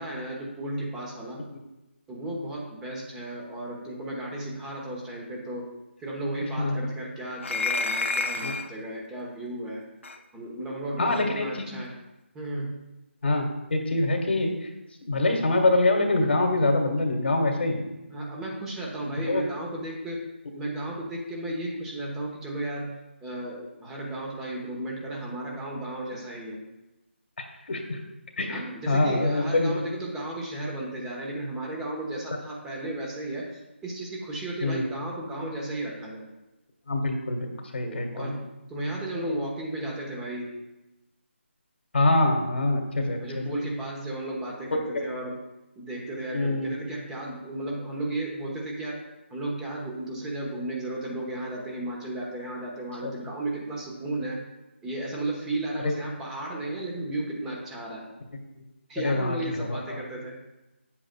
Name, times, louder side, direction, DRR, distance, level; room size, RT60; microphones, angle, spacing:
voice 1, 0.0-1.4 2.1-5.7 6.0-9.8 10.3-11.9 12.3-12.7 18.1-20.2 20.5-22.9 23.2-26.6 28.5-36.2 37.8-38.4 38.7-40.5 43.2-45.4 45.8-49.0 49.3-54.4 54.8-58.0 58.9-60.4, right 1 dB, 5° right, -2 dB, 1.0 m, -34 dB
voice 2, 6.6-6.9 8.4-8.5 11.0-11.7 13.2-13.4 13.7-14.7 15.1-17.8 19.3-19.4 27.4-28.0 28.4-29.7 34.6-34.8 36.9-38.4 41.9-43.5 44.9-45.0 46.3-46.7 53.0-53.1 55.8-55.9 59.0-60.0, left 2 dB, 65° left, 3 dB, 1.6 m, -25 dB
sound 1, 7.4-8.7 10.0-10.2 11.1-11.3, left 3 dB, 80° left, 0.8 m, -29 dB
9.2 x 7.6 x 2.3 m, 1.0 s
figure-of-eight pair, 165°, 7 cm